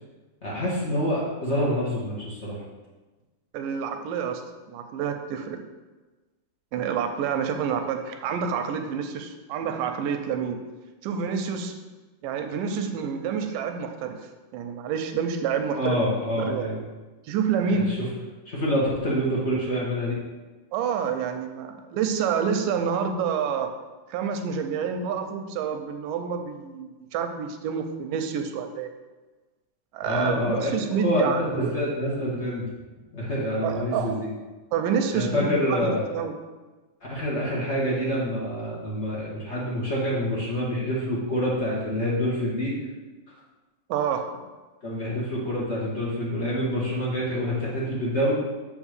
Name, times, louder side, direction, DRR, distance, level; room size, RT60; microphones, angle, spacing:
voice 1, 0.4-2.6 15.7-16.8 17.7-18.1 18.5-20.2 30.0-30.7 31.0-32.7 33.1-34.3 35.1-36.0 37.1-42.7 44.8-48.3, equal, 55° left, -6 dB, 0.7 m, -27 dB
voice 2, 3.5-4.4 4.7-5.7 6.7-10.6 11.0-11.8 12.2-14.2 14.5-16.0 16.4-16.7 17.3-18.0 20.7-23.7 24.1-28.9 29.9-31.8 33.6-34.2 34.7-36.3 43.9-44.3, right 6 dB, 85° right, 6 dB, 2.3 m, -28 dB
7.1 x 3.7 x 6.5 m, 1.2 s
omnidirectional pair, 3.8 m